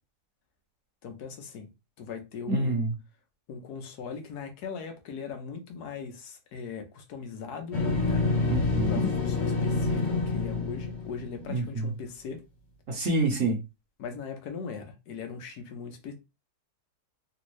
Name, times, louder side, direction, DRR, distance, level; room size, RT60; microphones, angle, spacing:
voice 1, 1.0-1.7 2.0-2.8 3.5-8.3 8.9-12.4 14.0-16.1, left 6 dB, 85° left, 1.4 m, -39 dB
voice 2, 2.5-2.9 8.4-9.1 11.5-11.9 12.9-13.6, right 2 dB, 60° right, 1.2 m, -27 dB
sound 1, 7.7-11.7, left 3 dB, 40° left, 0.8 m, -27 dB
3.5 x 2.5 x 3.0 m
omnidirectional pair, 1.7 m